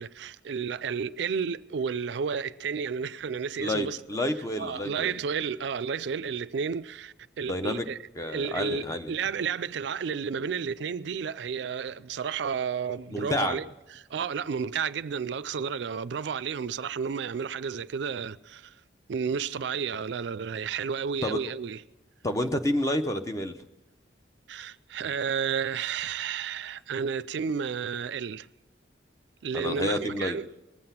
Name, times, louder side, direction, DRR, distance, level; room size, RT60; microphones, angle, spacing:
voice 1, 0.0-4.2 4.6-8.0 8.3-13.6 14.0-18.7 19.1-21.8 24.5-28.5 29.4-30.4, right 6 dB, 65° right, 0.4 m, -32 dB
voice 2, 3.6-5.1 7.5-7.9 8.2-9.1 13.1-13.6 21.2-21.5 22.2-23.6 29.5-30.4, left 1 dB, 15° left, 0.7 m, -29 dB
20.0 x 7.8 x 5.7 m
head